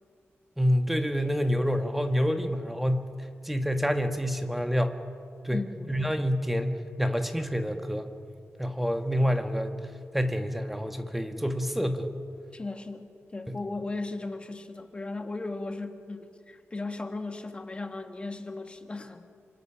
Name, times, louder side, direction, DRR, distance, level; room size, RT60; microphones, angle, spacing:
voice 1, 0.6-3.1 3.4-5.0 5.4-5.6 5.9-8.1 8.6-9.8 10.1-12.1 13.5-13.6, equal, 5° right, 6 dB, 1.5 m, -27 dB
voice 2, 5.5-5.9 12.5-19.2, left 3 dB, 25° left, 6 dB, 1.6 m, -36 dB
26.5 x 26.5 x 5.9 m, 2.4 s
wide cardioid pair, 140°, 5 cm